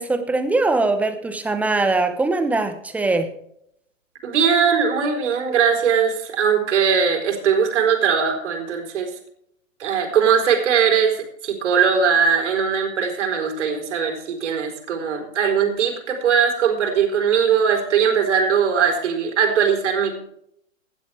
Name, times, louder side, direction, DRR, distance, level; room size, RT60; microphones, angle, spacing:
voice 1, 0.0-3.3, right 3 dB, 5° right, 9 dB, 0.8 m, -21 dB
voice 2, 4.2-9.1 9.8-20.2, right 7 dB, 60° right, 4 dB, 4.3 m, -20 dB
18.0 x 12.0 x 3.5 m, 0.71 s
hypercardioid pair, 140°, 40 cm